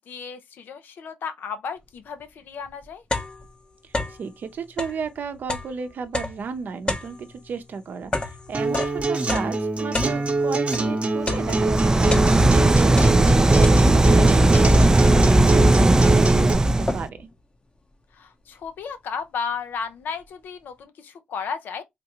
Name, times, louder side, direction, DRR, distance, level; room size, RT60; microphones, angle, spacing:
voice 1, 0.0-3.0 13.2-13.5 18.1-21.8, left 6 dB, 80° left, 0.6 m, -34 dB
sound 1, 2.2-2.3 2.7-4.3 4.7-10.9 11.3-12.6 12.9-14.2 14.5-15.1 15.7-15.8 16.1-17.3, left 2 dB, 30° left, 0.7 m, -31 dB
voice 2, 3.8-17.3, right 6 dB, 70° right, 0.6 m, -34 dB
Acoustic guitar, 8.5-16.5, right 3 dB, 40° right, 0.9 m, -25 dB
sound 2, 11.3-17.1, right 1 dB, 20° right, 0.3 m, -17 dB
3.7 x 2.3 x 2.8 m
cardioid pair, 60°, 3 cm